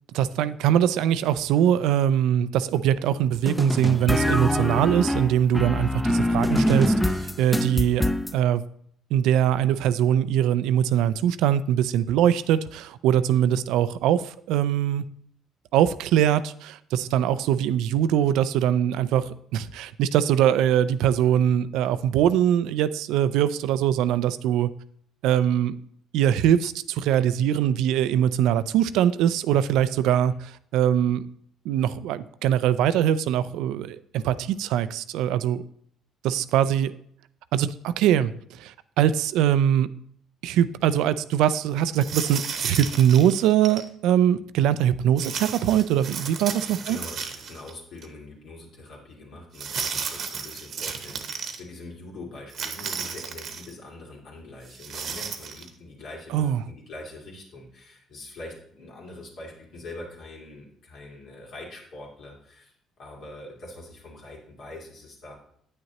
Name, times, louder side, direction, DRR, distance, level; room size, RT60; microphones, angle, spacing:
voice 1, 0.1-8.0 8.3-8.6 9.1-15.0 15.7-24.7 25.2-25.7 26.1-31.3 31.7-35.6 36.2-36.9 37.5-38.3 38.6-39.9 40.4-47.0 56.3-56.6, right 10 dB, 80° right, 14 dB, 0.3 m, -22 dB
sound 1, 3.5-8.3, left 1 dB, 5° left, 0.5 m, -24 dB
sound 2, 41.9-43.9 45.2-47.7 48.0-48.1 49.5-51.6 52.5-53.7 54.7-55.7, right 6 dB, 60° right, 0.9 m, -33 dB
voice 2, 46.8-65.3, left 2 dB, 65° left, -2 dB, 2.4 m, -43 dB
8.7 x 6.4 x 3.0 m, 0.67 s
supercardioid pair, 70°, 0 cm